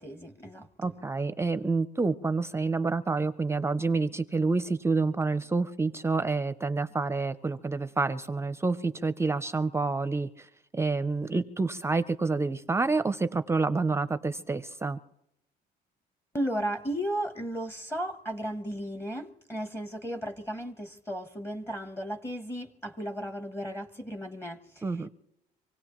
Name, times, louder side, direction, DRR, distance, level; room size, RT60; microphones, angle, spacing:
voice 1, 0.0-0.9 16.3-25.1, equal, 15° left, 10 dB, 0.9 m, -35 dB
voice 2, 0.8-10.5 10.7-15.0 24.8-25.1, right 3 dB, 15° right, 12 dB, 0.5 m, -28 dB
26.5 x 17.0 x 3.0 m, 0.84 s
cardioid pair, 110°, 17 cm